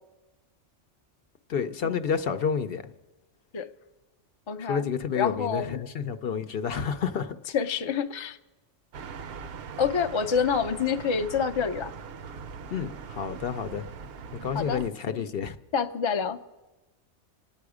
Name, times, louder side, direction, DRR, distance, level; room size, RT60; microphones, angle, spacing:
voice 1, 1.5-2.9 4.6-7.4 12.7-13.8 14.3-15.6, left 7 dB, 60° left, 9 dB, 0.8 m, -30 dB
voice 2, 4.5-4.9 5.2-5.8 7.5-8.4 9.8-11.9 14.5-14.8 15.1-15.2 15.7-16.4, left 6 dB, 35° left, 6 dB, 0.5 m, -27 dB
sound 1, 8.9-14.9, right 6 dB, 65° right, 0.8 m, -41 dB
27.5 x 9.5 x 4.9 m, 1.1 s
omnidirectional pair, 1.2 m